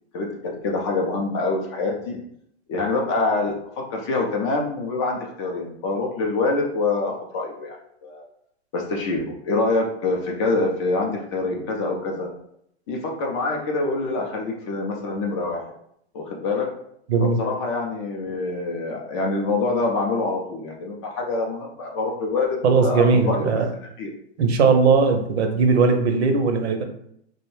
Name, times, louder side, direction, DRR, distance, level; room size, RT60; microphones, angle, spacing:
voice 1, 0.6-2.2 2.7-8.2 8.7-12.3 12.9-15.6 16.1-16.7 17.2-23.5 24.0-24.1, left 3 dB, 25° left, 0 dB, 0.4 m, -25 dB
voice 2, 17.1-17.4 22.6-23.7 24.4-26.8, right 4 dB, 70° right, 6 dB, 0.6 m, -19 dB
2.6 x 2.0 x 3.0 m, 0.71 s
hypercardioid pair, 130°, 34 cm